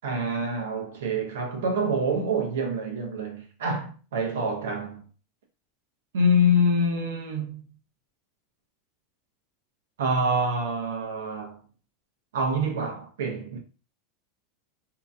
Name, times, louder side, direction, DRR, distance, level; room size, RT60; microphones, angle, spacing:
voice 1, 0.0-5.0 6.1-7.6 10.0-11.6 12.3-13.6, equal, 80° right, 0.9 m, -26 dB
2.8 x 2.3 x 2.7 m
hypercardioid pair, 105°, 0 cm